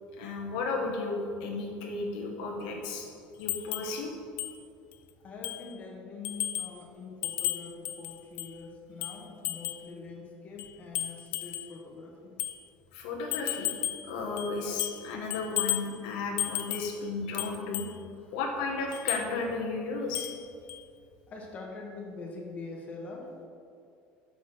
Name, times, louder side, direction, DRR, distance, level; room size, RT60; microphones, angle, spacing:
voice 1, 0.2-3.1 3.4-4.1 12.9-13.7 14.1-17.8 18.3-20.3, left 3 dB, 90° left, 0 dB, 1.4 m, -34 dB
sound 1, 3.5-3.9 4.4-4.5 4.9-5.0 5.4-5.7 6.2-6.8 7.2-8.6 9.0-9.9 10.6-11.7 12.4-12.6 13.3-14.1 14.4-15.1 15.3-15.9 16.4-16.9 17.4-17.9 18.9-19.3 20.1-20.4 20.7-20.8, left 14 dB, 60° left, 0.5 m, -34 dB
voice 2, 5.2-12.4 18.2-18.4 21.3-23.4, left 3 dB, 35° left, 0 dB, 1.2 m, -44 dB
6.6 x 5.9 x 5.9 m, 2.4 s
cardioid pair, 130°, 4 cm